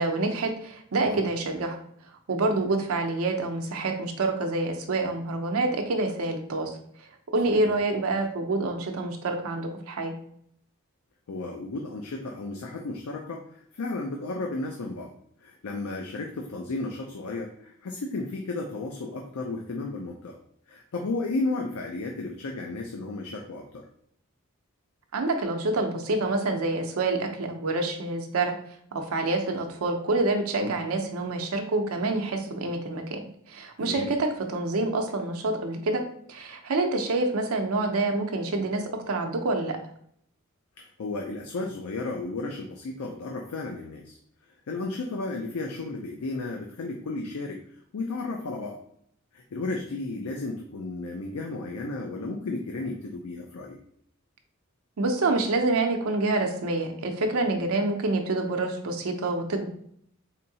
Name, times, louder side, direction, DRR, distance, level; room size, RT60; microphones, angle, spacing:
voice 1, 0.0-1.8 2.3-6.8 7.3-10.1 25.1-28.6 28.9-36.0 36.3-39.8 55.0-59.7, right 2 dB, 75° right, 4 dB, 0.6 m, -27 dB
voice 2, 11.3-15.1 15.4-20.4 20.7-23.9 30.6-30.7 33.8-34.1 40.8-44.2 44.7-47.6 47.9-48.8 49.3-53.8, left 3 dB, 85° left, 2 dB, 0.5 m, -33 dB
4.3 x 2.6 x 2.7 m, 0.68 s
head